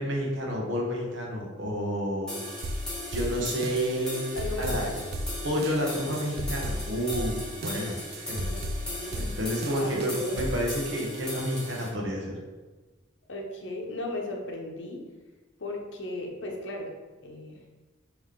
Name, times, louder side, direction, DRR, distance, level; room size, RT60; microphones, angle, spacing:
voice 1, 0.0-2.4 3.1-4.2 4.6-4.9 5.4-8.0 8.2-8.5 9.2-12.3, equal, 80° right, -1 dB, 1.0 m, -30 dB
sound 1, 2.3-11.9, left 1 dB, 5° left, 1.4 m, -38 dB
sound 2, 2.6-10.6, equal, 55° right, 0.3 m, -35 dB
voice 2, 4.4-5.0 8.5-9.3 9.8-10.5 13.3-15.0 15.6-16.9 17.2-17.6, left 2 dB, 70° left, 0 dB, 0.7 m, -36 dB
3.6 x 3.1 x 3.6 m, 1.2 s
head